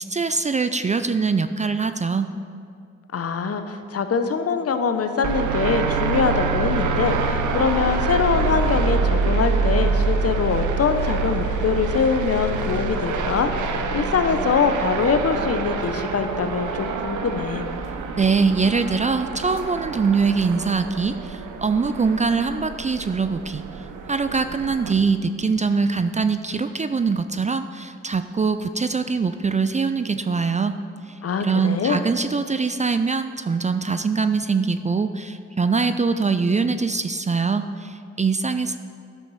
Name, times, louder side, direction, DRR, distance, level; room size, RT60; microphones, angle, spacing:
voice 1, 0.0-2.3 18.2-23.6 24.1-30.8 31.4-38.8, right 4 dB, 25° right, 10 dB, 0.4 m, -23 dB
voice 2, 3.1-17.7 31.2-32.0, left 5 dB, 50° left, 8 dB, 0.7 m, -23 dB
sound 1, 5.2-24.9, right 4 dB, 75° right, 0.7 m, -26 dB
10.5 x 6.3 x 4.1 m, 2.3 s
supercardioid pair, 45°, 30 cm